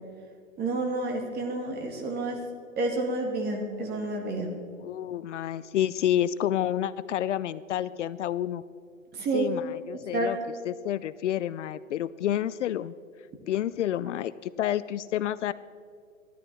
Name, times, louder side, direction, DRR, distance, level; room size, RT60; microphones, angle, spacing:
voice 1, 0.6-2.4 2.8-4.5 9.1-9.5 10.1-10.3, right 2 dB, 25° right, 2 dB, 2.6 m, -29 dB
voice 2, 4.8-8.6 9.3-10.4 10.7-12.9 13.5-15.5, left 11 dB, 65° left, 17 dB, 0.5 m, -29 dB
16.0 x 12.5 x 4.4 m, 2.2 s
hypercardioid pair, 115°, 40 cm